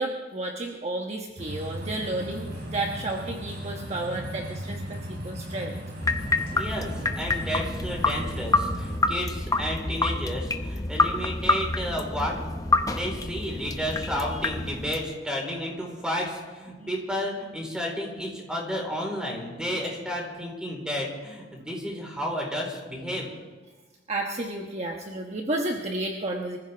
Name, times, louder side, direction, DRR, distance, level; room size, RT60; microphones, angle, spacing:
voice 1, 0.0-5.0 5.2-5.7 16.7-16.9 24.1-26.6, right 2 dB, 35° right, 1 dB, 1.3 m, -31 dB
sound 1, 1.4-9.0, equal, 60° right, 3.8 m, -37 dB
sound 2, 6.0-15.0, left 2 dB, 20° left, 0.8 m, -27 dB
voice 2, 6.5-12.5 12.8-23.3, equal, 5° right, -1 dB, 4.4 m, -32 dB
24.5 x 15.0 x 3.5 m, 1.3 s
head